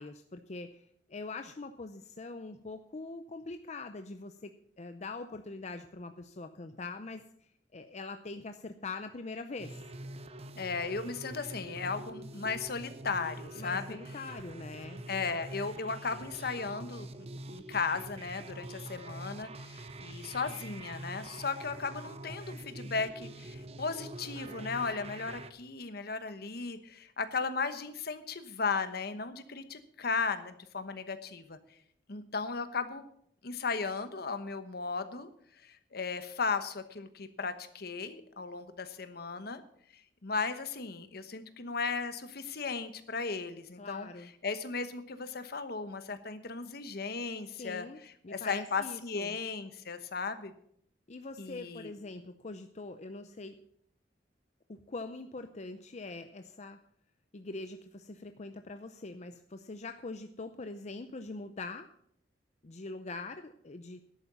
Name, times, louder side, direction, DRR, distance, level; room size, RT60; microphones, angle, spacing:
voice 1, 0.0-4.5 4.8-7.2 7.7-9.7 13.5-15.0 43.8-44.3 47.6-48.0 48.2-49.4 51.1-53.6 54.7-56.8 57.3-61.9 62.6-64.0, left 3 dB, 40° left, 8 dB, 0.6 m, -43 dB
sound 1, 9.6-25.5, right 1 dB, 35° right, 0.7 m, -45 dB
voice 2, 10.5-13.8 15.1-31.6 32.1-33.0 33.4-35.3 35.6-39.6 40.2-50.5 51.4-51.9, left 4 dB, 60° left, 10 dB, 1.1 m, -36 dB
11.5 x 8.7 x 6.8 m, 0.68 s
head